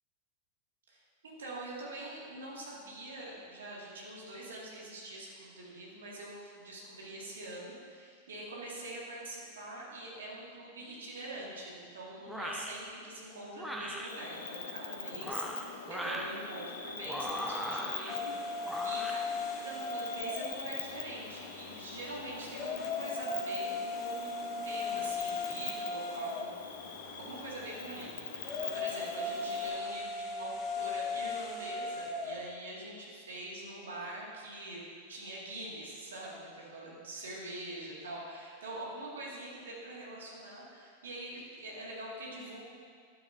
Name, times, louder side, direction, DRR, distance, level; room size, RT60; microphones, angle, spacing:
voice 1, 0.9-19.2 19.6-26.6 26.8-42.6, right 1 dB, 65° right, -5 dB, 2.2 m, -44 dB
sound 1, 12.3-12.7 13.6-14.1 15.1-16.3 17.0-18.2 18.6-19.2, equal, 5° right, 0.8 m, -38 dB
Cricket, 14.1-29.7, left 6 dB, 60° left, 1.0 m, -43 dB
sound 2, 18.1-32.5, left 3 dB, 30° left, 0.9 m, -38 dB
12.0 x 9.0 x 2.7 m, 2.1 s
figure-of-eight pair, 90°, 0 cm